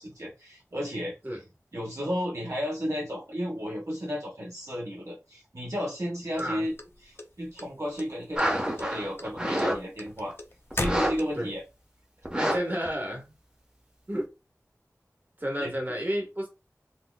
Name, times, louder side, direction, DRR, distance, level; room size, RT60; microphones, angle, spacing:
voice 1, 0.0-1.4 1.7-6.7 7.0-10.4 10.7-11.6 12.5-12.6 15.6-15.7, equal, 60° right, 1.0 m, -33 dB
sound 1, 6.4-7.6 8.0-8.5 8.8-11.6, left 2 dB, 40° left, 0.4 m, -35 dB
sound 2, 8.4-9.8 10.1-10.3 10.7-11.1 11.5-11.6 12.2-12.6 12.9-13.0, equal, 15° right, 1.0 m, -27 dB
voice 2, 12.3-13.2 14.1-14.3 15.4-16.5, equal, 35° right, 1.3 m, -31 dB
4.3 x 2.3 x 2.2 m
wide cardioid pair, 50°, 6 cm